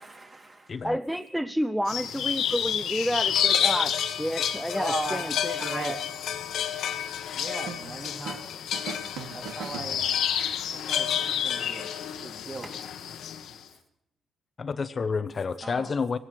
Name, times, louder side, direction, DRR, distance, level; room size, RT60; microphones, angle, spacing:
voice 1, 0.0-0.8 4.7-6.0 7.3-8.4 9.3-10.1 10.7-12.0 12.2-12.7 15.6-15.9, right 2 dB, 35° right, 1 dB, 3.7 m, -37 dB
voice 2, 0.8-5.9, equal, ahead, 13 dB, 0.5 m, -30 dB
sound 1, 1.9-13.6, left 9 dB, 75° left, 1.2 m, -29 dB
sound 2, 7.7-8.5 8.7-10.5, right 7 dB, 85° right, 1.4 m, -40 dB
voice 3, 14.6-16.2, left 5 dB, 40° left, 12 dB, 0.7 m, -29 dB
17.0 x 16.5 x 4.7 m, 0.79 s
cardioid pair, 90°, 0 cm